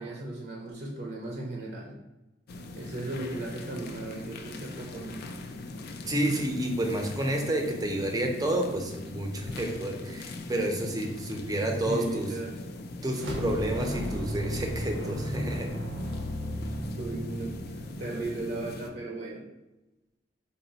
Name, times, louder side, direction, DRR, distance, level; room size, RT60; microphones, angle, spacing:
voice 1, 0.0-2.0 2.7-5.2 11.8-12.6 17.0-19.4, right 2 dB, 60° right, -2 dB, 0.6 m, -36 dB
sound 1, 2.5-18.9, left 2 dB, 55° left, 0.4 m, -41 dB
voice 2, 6.1-12.3 13.0-15.7, right 1 dB, 20° right, 2 dB, 0.5 m, -30 dB
sound 2, 13.1-18.5, equal, 90° right, 0.9 m, -35 dB
4.0 x 2.1 x 3.9 m, 0.99 s
head